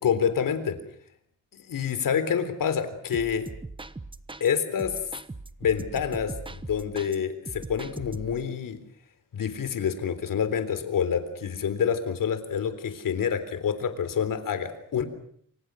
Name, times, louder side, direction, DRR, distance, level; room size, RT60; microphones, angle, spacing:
voice 1, 0.0-0.8 1.7-3.5 4.4-5.0 5.6-8.8 9.3-15.1, left 7 dB, 75° left, 11 dB, 3.7 m, -27 dB
sound 1, 3.1-4.5 4.8-7.2 7.5-8.5, right 3 dB, 15° right, 1.1 m, -40 dB
27.5 x 26.5 x 6.4 m, 0.64 s
wide cardioid pair, 150°, 33 cm